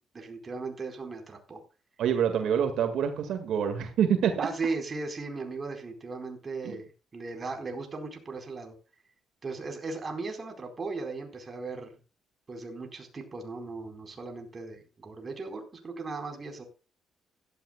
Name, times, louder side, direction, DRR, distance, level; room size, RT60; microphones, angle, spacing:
voice 1, 0.1-1.6 4.4-8.8 9.4-11.9 12.5-16.6, right 3 dB, 30° right, 4 dB, 4.4 m, -37 dB
voice 2, 2.0-4.5 6.6-6.8, right 8 dB, 75° right, 6 dB, 1.9 m, -26 dB
16.5 x 12.5 x 2.3 m, 0.33 s
cardioid pair, 110°, 0 cm